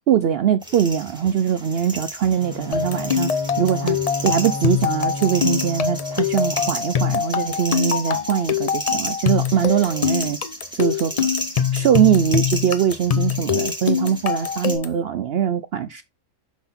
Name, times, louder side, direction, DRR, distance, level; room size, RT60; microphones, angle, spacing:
voice 1, 0.1-3.3 3.6-4.0 4.2-10.4 10.7-11.1 11.7-16.0, right 9 dB, 75° right, 0.5 m, -21 dB
sound 1, 0.6-14.7, equal, 5° right, 2.4 m, -33 dB
Bowed string instrument, 2.3-7.1, left 2 dB, 15° left, 0.9 m, -32 dB
sound 2, 2.7-15.0, left 8 dB, 60° left, 0.4 m, -24 dB
6.0 x 5.8 x 4.2 m
omnidirectional pair, 1.5 m